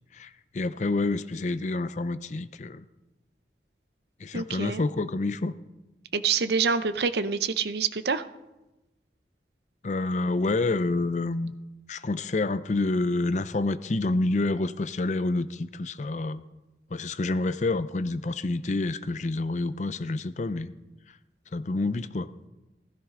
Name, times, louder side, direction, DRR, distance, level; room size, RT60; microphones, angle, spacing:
voice 1, 0.1-2.8 4.2-5.5 9.8-11.5 11.9-16.4 16.9-20.7 21.5-22.3, left 2 dB, 40° left, 14 dB, 0.5 m, -28 dB
voice 2, 4.3-4.8 6.1-8.2, right 5 dB, 65° right, 13 dB, 0.6 m, -26 dB
16.0 x 14.0 x 3.7 m, 1.0 s
head